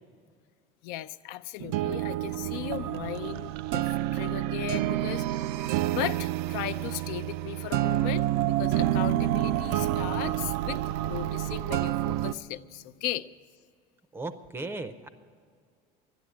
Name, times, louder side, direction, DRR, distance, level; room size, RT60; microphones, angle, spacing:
voice 1, 0.8-5.4 5.9-10.8 11.1-13.3, left 13 dB, 65° left, 13 dB, 0.5 m, -37 dB
sound 1, 1.6-12.3, right 14 dB, 75° right, 0.5 m, -28 dB
voice 2, 14.1-15.1, right 2 dB, 15° right, 10 dB, 0.5 m, -36 dB
12.5 x 10.5 x 9.6 m, 2.1 s
cardioid pair, 160°, 18 cm